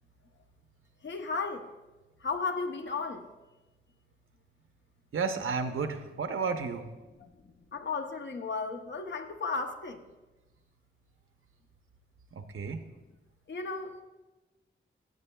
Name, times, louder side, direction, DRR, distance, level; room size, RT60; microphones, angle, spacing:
voice 1, 1.0-1.7 2.2-3.3 7.2-10.0 13.5-14.0, left 4 dB, 60° left, 6 dB, 0.7 m, -35 dB
voice 2, 5.1-6.9 12.3-12.9, right 5 dB, 80° right, 7 dB, 0.7 m, -32 dB
15.5 x 7.9 x 2.2 m, 1.2 s
wide cardioid pair, 155°, 21 cm